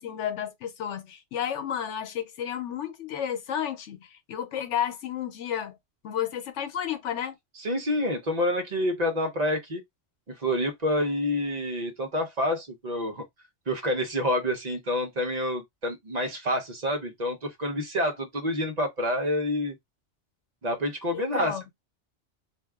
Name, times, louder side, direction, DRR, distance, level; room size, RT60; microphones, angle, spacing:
voice 1, 0.0-5.8 6.0-7.3 21.1-21.6, left 9 dB, 80° left, 1.0 m, -32 dB
voice 2, 7.6-9.8 10.3-13.2 13.7-19.7 20.6-21.7, left 1 dB, 40° right, 0.9 m, -28 dB
2.7 x 2.3 x 3.5 m
omnidirectional pair, 1.2 m